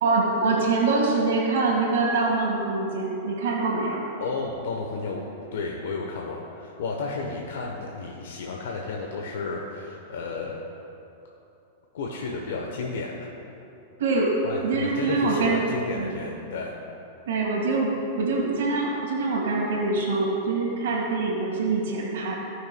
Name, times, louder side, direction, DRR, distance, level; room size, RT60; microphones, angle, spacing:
voice 1, 0.0-4.0 14.0-14.3 14.6-15.7 15.9-16.1 17.3-17.9 18.2-22.3, right 3 dB, 80° right, -3 dB, 1.7 m, -24 dB
voice 2, 4.2-5.2 5.5-10.6 11.9-13.3 14.4-16.7, left 3 dB, 80° left, -1 dB, 0.9 m, -32 dB
16.5 x 6.2 x 2.2 m, 2.9 s
supercardioid pair, 140°, 0 cm